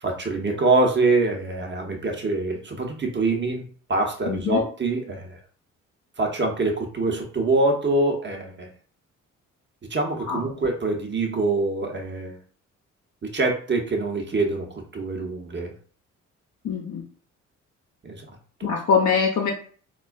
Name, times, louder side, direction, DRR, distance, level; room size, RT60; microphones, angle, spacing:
voice 1, 0.0-5.4 6.2-8.7 9.9-12.4 13.2-15.7 18.0-18.7, right 2 dB, 30° right, 2 dB, 1.0 m, -25 dB
voice 2, 4.3-4.6 10.2-10.4 16.6-17.0 18.6-19.5, left 6 dB, 50° left, 0 dB, 0.7 m, -23 dB
4.1 x 2.4 x 2.4 m, 0.43 s
hypercardioid pair, 45°, 37 cm